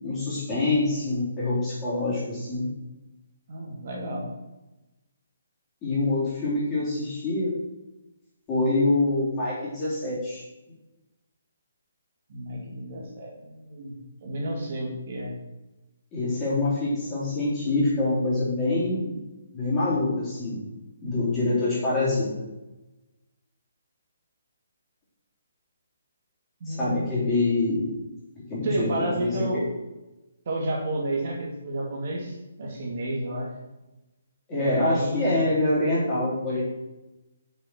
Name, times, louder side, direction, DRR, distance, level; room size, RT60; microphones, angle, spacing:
voice 1, 0.0-2.7 5.8-7.5 8.5-10.4 16.1-19.2 19.5-20.6 21.0-22.3 26.7-27.8 28.5-29.4 34.5-36.6, left 2 dB, 10° left, -8 dB, 3.8 m, -25 dB
voice 2, 3.5-4.3 12.3-13.9 14.2-15.3 26.6-27.0 28.6-29.7 30.5-33.5 34.5-35.4, right 1 dB, 35° right, -2 dB, 2.4 m, -31 dB
7.5 x 6.8 x 7.8 m, 1.0 s
hypercardioid pair, 175°, 0 cm